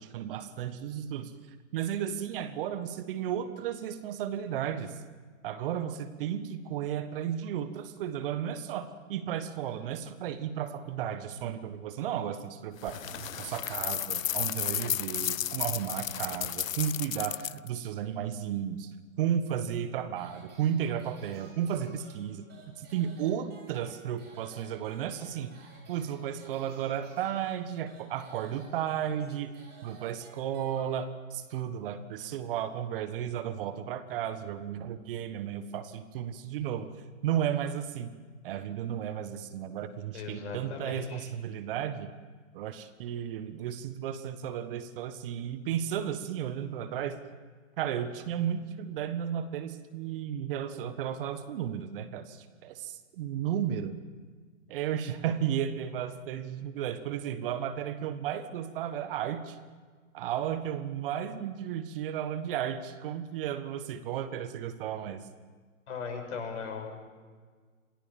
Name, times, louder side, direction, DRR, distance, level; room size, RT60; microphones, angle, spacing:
voice 1, 0.0-1.3 1.7-5.0 5.4-13.1 13.4-22.4 22.8-25.5 25.9-29.6 29.8-36.9 37.2-38.1 38.4-42.1 42.5-47.2 47.8-54.0 54.7-59.6 60.1-65.3, right 9 dB, 45° right, 10 dB, 1.6 m, -34 dB
sound 1, 12.7-13.9, right 5 dB, 75° right, 2.8 m, -50 dB
sound 2, 12.8-17.7, left 11 dB, 80° left, 0.6 m, -33 dB
sound 3, 20.2-31.3, right 3 dB, 25° right, 7.0 m, -55 dB
voice 2, 40.1-41.3 65.9-67.0, left 5 dB, 55° left, 2 dB, 6.8 m, -38 dB
27.5 x 17.0 x 7.3 m, 1.5 s
hypercardioid pair, 125°, 39 cm